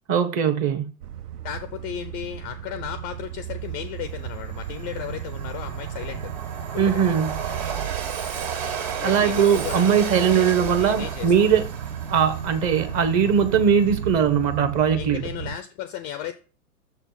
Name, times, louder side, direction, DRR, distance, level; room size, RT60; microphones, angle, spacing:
voice 1, 0.1-0.9 6.8-7.3 9.0-11.6 12.1-15.2, right 7 dB, 35° right, 1.1 m, -20 dB
sound 1, 1.0-15.6, right 9 dB, 85° right, 0.7 m, -35 dB
voice 2, 1.4-6.3 6.7-7.0 9.0-11.6 14.9-16.3, left 11 dB, 25° left, 0.3 m, -35 dB
Train, 3.5-3.6 4.0-14.4, right 7 dB, 65° right, 2.0 m, -34 dB
6.7 x 4.1 x 5.6 m
hypercardioid pair, 105°, 45 cm